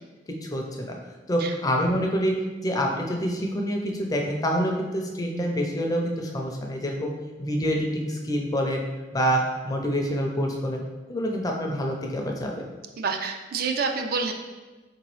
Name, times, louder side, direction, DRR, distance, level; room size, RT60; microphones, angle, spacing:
voice 1, 0.4-0.9 1.3-2.3 2.6-7.1 7.4-8.9 9.1-10.8 11.1-12.5, equal, 20° left, 1 dB, 0.4 m, -26 dB
voice 2, 13.0-14.3, right 5 dB, 50° right, 4 dB, 0.3 m, -27 dB
4.4 x 2.9 x 3.0 m, 1.2 s
head